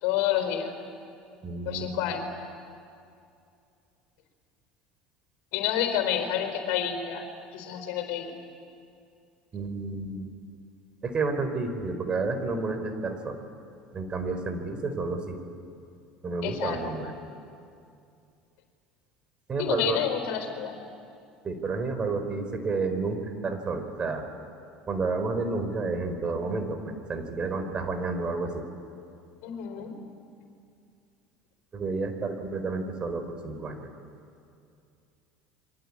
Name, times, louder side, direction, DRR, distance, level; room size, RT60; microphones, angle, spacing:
voice 1, 0.0-0.7 1.7-2.3 5.5-7.2 7.5-8.3 16.4-16.8 19.6-20.7 29.4-30.0, left 10 dB, 65° left, 6 dB, 4.3 m, -29 dB
voice 2, 1.4-2.0 9.5-10.3 11.0-13.4 13.9-15.4 16.2-17.1 19.5-20.0 21.4-24.2 24.9-28.6 31.7-33.9, right 3 dB, 35° right, 7 dB, 4.3 m, -30 dB
28.5 x 24.0 x 8.6 m, 2.5 s
hypercardioid pair, 75°, 3 cm